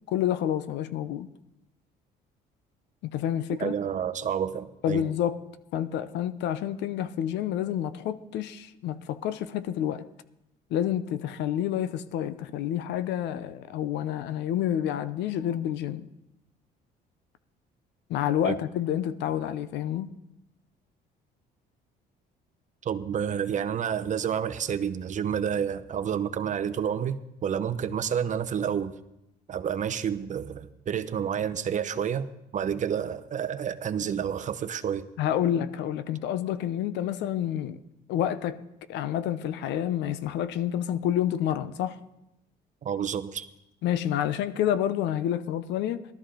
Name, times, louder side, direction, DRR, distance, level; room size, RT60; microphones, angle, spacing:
voice 1, 0.1-1.3 3.0-3.7 4.8-5.4 5.7-10.0 10.7-16.1 18.1-20.1 35.2-37.8 38.1-38.6 38.9-42.0 43.8-46.1, left 10 dB, 80° left, 0.8 m, -28 dB
voice 2, 3.6-5.1 18.4-18.6 22.8-29.0 29.5-35.1 42.8-43.5, right 8 dB, 45° right, 0.8 m, -29 dB
18.0 x 13.0 x 3.9 m
cardioid pair, 100°, 18 cm